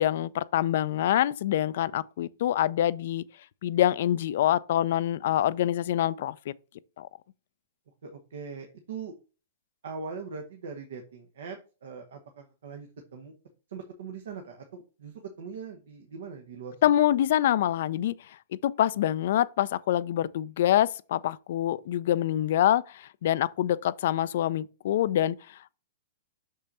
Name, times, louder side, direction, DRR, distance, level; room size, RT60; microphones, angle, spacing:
voice 1, 0.0-3.2 3.6-6.5 7.0-7.1 16.8-18.4 18.6-25.8, left 12 dB, 60° left, 0.4 m, -26 dB
voice 2, 8.0-9.1 9.8-13.3 13.7-16.9, right 5 dB, 70° right, 1.3 m, -41 dB
6.5 x 5.4 x 4.2 m
hypercardioid pair, 120°, 0 cm